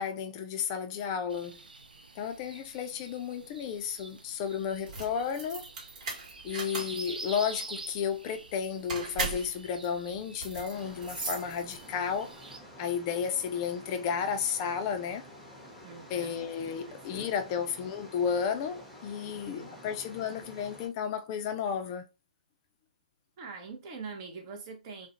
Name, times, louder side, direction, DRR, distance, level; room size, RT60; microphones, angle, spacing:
voice 1, 0.0-1.6 2.2-5.7 6.4-12.3 12.8-15.2 16.1-22.0, left 7 dB, 30° left, 0.4 m, -33 dB
sound 1, 1.3-12.6, right 3 dB, 90° right, 0.4 m, -47 dB
sound 2, 4.7-12.1, right 3 dB, 55° right, 1.1 m, -38 dB
sound 3, 10.7-20.9, equal, ahead, 0.8 m, -50 dB
voice 2, 15.8-17.6 19.2-19.8 23.4-25.1, right 4 dB, 35° right, 0.6 m, -45 dB
2.4 x 2.0 x 2.7 m
hypercardioid pair, 135°, 5 cm